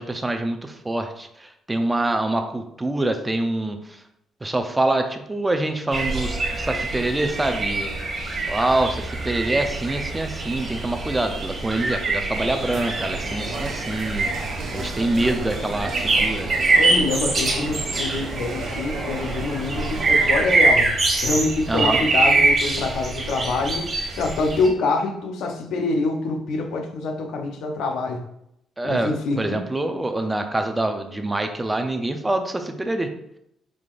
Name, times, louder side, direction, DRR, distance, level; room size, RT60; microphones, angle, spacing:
voice 1, 0.0-4.0 4.4-7.9 8.5-14.3 14.7-16.5 21.7-22.0 28.8-33.1, right 2 dB, 15° right, 6 dB, 0.5 m, -25 dB
sound 1, 5.9-24.7, right 3 dB, 40° right, 1.5 m, -24 dB
sound 2, 12.3-20.3, right 2 dB, 75° right, 1.0 m, -33 dB
voice 2, 16.8-20.9 21.2-28.3 28.8-29.6, left 3 dB, 80° left, 4 dB, 0.6 m, -25 dB
4.9 x 3.7 x 2.5 m, 0.78 s
cardioid pair, 90°, 0 cm